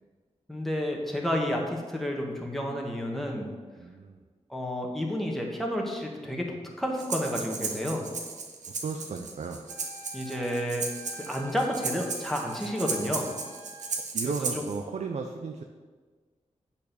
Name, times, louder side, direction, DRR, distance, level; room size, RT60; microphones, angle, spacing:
voice 1, 0.5-3.5 4.5-8.0 10.1-10.8 11.2-13.3 14.2-14.3, equal, ahead, 0 dB, 1.5 m, -30 dB
voice 2, 3.8-4.2 8.8-9.6 14.1-15.6, right 5 dB, 70° right, 4 dB, 0.6 m, -34 dB
Breathing, 7.0-14.8, right 4 dB, 85° right, 1.1 m, -35 dB
Wind instrument woodwind instrument, 9.7-14.0, equal, 15° right, 2.2 m, -47 dB
8.4 x 4.3 x 6.9 m, 1.4 s
wide cardioid pair, 95°, 12 cm